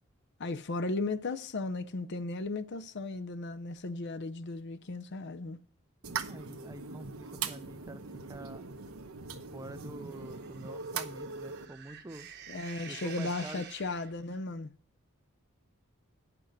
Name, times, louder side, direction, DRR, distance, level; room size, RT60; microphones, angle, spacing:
voice 1, 0.4-5.6 12.5-14.7, left 3 dB, 55° left, 0.6 m, -36 dB
sound 1, 6.0-11.7, right 5 dB, 85° right, 0.9 m, -40 dB
voice 2, 6.3-8.7 9.5-12.3 12.9-13.6, right 2 dB, 15° right, 0.4 m, -46 dB
sound 2, 10.1-14.4, right 7 dB, 50° right, 1.0 m, -49 dB
9.2 x 6.0 x 6.5 m
head